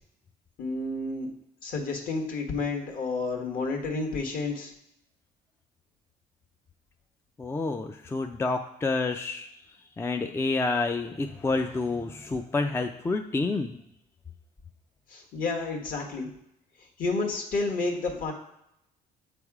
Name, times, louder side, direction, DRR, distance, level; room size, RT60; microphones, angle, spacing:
voice 1, 0.6-1.3 1.6-4.7 15.1-16.3 17.0-18.3, left 3 dB, 55° left, 2 dB, 1.4 m, -30 dB
voice 2, 7.4-9.5 10.0-13.8, left 3 dB, 15° left, 6 dB, 0.4 m, -28 dB
7.8 x 3.4 x 4.8 m, 0.81 s
cardioid pair, 110°, 17 cm